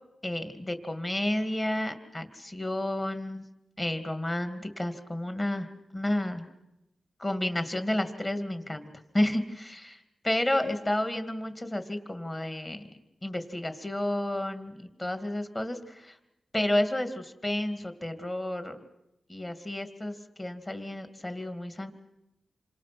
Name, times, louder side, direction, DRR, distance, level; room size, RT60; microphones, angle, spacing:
voice 1, 0.2-3.4 3.8-6.5 7.2-8.9 9.1-12.8 13.2-16.2 16.5-18.8 19.3-21.9, left 1 dB, 25° left, 8 dB, 2.3 m, -31 dB
28.0 x 25.0 x 6.0 m, 0.88 s
cardioid pair, 85°, 0 cm